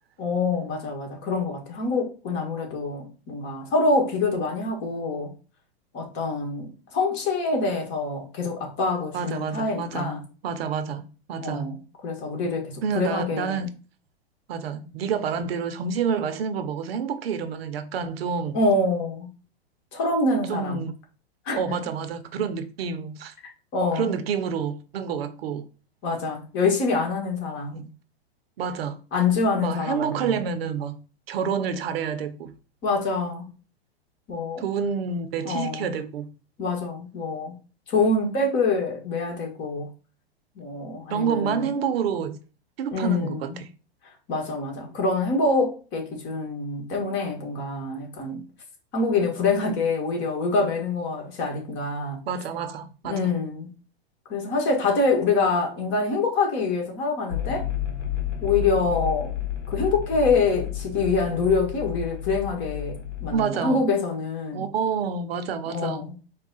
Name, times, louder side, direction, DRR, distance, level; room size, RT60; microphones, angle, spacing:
voice 1, 0.2-5.3 5.9-10.2 11.4-11.8 12.0-13.7 18.5-19.3 19.9-20.8 21.5-21.8 23.7-24.1 26.0-27.9 29.1-30.4 32.8-33.5 34.3-34.7 35.4-35.9 36.6-37.5 37.9-39.9 40.6-41.7 42.9-43.6 44.3-48.4 48.9-52.2 53.0-53.7 54.3-57.7 58.4-59.3 59.7-62.9 63.2-64.7 65.7-66.1, left 3 dB, 35° left, 1.7 m, -25 dB
voice 2, 9.1-10.1 10.4-11.7 12.8-13.7 14.5-18.6 20.5-20.9 21.5-23.3 23.9-25.7 27.7-27.9 28.6-29.0 29.6-31.0 31.3-32.5 34.6-36.3 41.1-42.4 42.8-43.7 52.3-53.3 63.3-63.8 64.5-66.0, right 6 dB, 70° right, 0.8 m, -28 dB
sound 1, 57.3-63.4, left 11 dB, 55° left, 1.2 m, -31 dB
4.6 x 2.3 x 4.0 m
hypercardioid pair, 120°, 31 cm